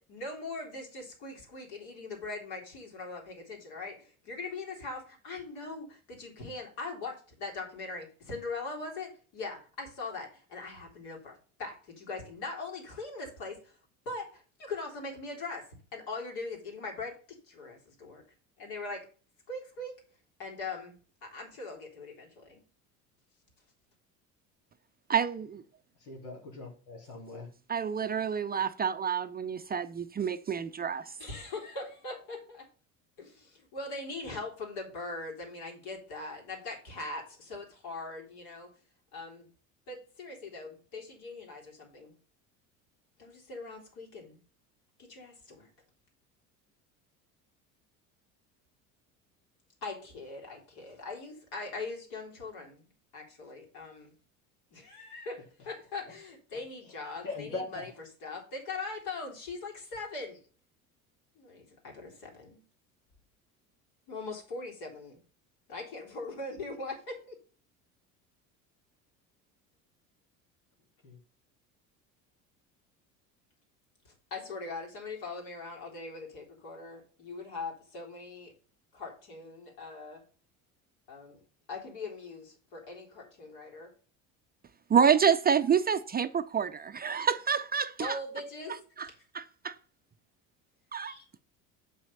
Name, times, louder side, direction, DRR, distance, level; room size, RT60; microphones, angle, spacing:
voice 1, 0.1-13.7 14.1-17.2 17.5-18.2 18.6-19.1 19.5-20.0 20.4-20.9 21.2-22.6 31.2-32.7 33.2-38.7 39.1-39.5 39.9-42.1 43.2-44.4 45.0-45.7 49.8-52.8 53.1-54.1 54.7-57.9 58.2-60.4 61.4-62.6 64.1-65.2 65.7-67.4 74.3-78.5 78.9-80.2 81.1-81.4 81.7-83.9 88.0-88.8 91.0-91.3, left 3 dB, 65° left, 3.7 m, -41 dB
voice 2, 25.1-25.6 27.7-31.1 84.9-88.2 89.0-89.1 89.3-89.7 90.9-91.1, right 7 dB, 25° right, 0.5 m, -28 dB
voice 3, 26.0-27.5 57.2-57.9 71.0-71.2, left 3 dB, 85° left, 3.4 m, -40 dB
7.7 x 5.7 x 5.5 m
hypercardioid pair, 75°, 41 cm